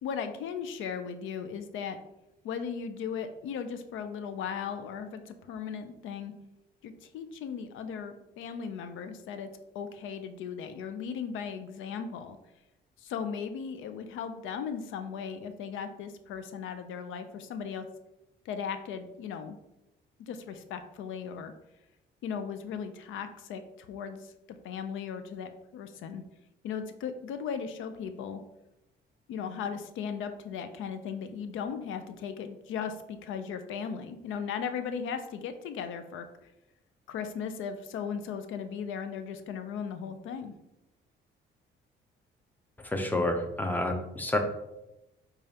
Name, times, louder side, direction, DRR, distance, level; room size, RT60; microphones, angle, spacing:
voice 1, 0.0-2.0 2.4-6.3 6.8-9.5 9.7-12.4 13.0-17.9 18.5-19.6 20.2-21.5 22.2-24.3 24.6-26.2 26.6-28.4 29.3-36.5 37.1-40.5, left 7 dB, 80° left, 9 dB, 0.4 m, -37 dB
voice 2, 42.8-44.4, left 1 dB, 10° left, 4 dB, 0.5 m, -29 dB
4.9 x 2.3 x 2.7 m, 0.93 s
cardioid pair, 90°, 20 cm